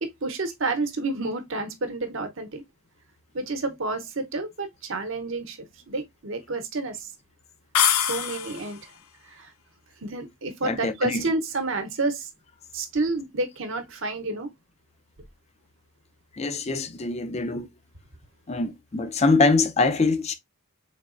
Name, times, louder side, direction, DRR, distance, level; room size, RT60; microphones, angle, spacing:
voice 1, 0.0-2.6 3.3-5.6 5.9-7.1 8.0-8.8 9.3-9.5 10.0-12.3 12.7-14.5, right 3 dB, 60° right, 0.8 m, -29 dB
sound 1, 7.7-8.8, left 9 dB, 80° left, 0.5 m, -24 dB
voice 2, 10.6-11.3 16.4-17.7 18.5-20.3, left 3 dB, 30° left, 0.4 m, -23 dB
3.9 x 3.3 x 2.4 m
head